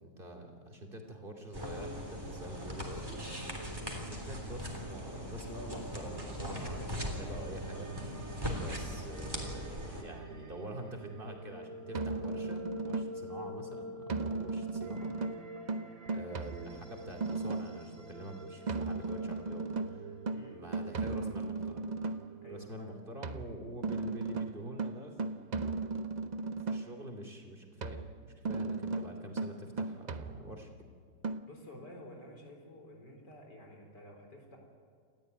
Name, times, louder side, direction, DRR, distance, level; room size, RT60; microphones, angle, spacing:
voice 1, 0.0-3.2 4.1-8.2 8.5-15.2 16.1-20.2 20.5-21.8 22.5-25.5 26.6-28.0 28.4-30.7, right 1 dB, 30° right, 3 dB, 2.9 m, -46 dB
sound 1, 1.5-10.0, equal, 10° right, 3.4 m, -40 dB
sound 2, 6.0-23.0, right 1 dB, 55° right, 2.1 m, -48 dB
sound 3, 11.9-13.3 14.1-17.9 18.7-22.3 23.2-27.0 27.8-30.8 31.2-31.4, right 3 dB, 90° right, 0.3 m, -36 dB
voice 2, 20.3-20.7 22.4-23.1 31.5-34.6, left 1 dB, 75° left, 2 dB, 4.6 m, -51 dB
28.5 x 14.5 x 9.3 m, 2.1 s
omnidirectional pair, 1.9 m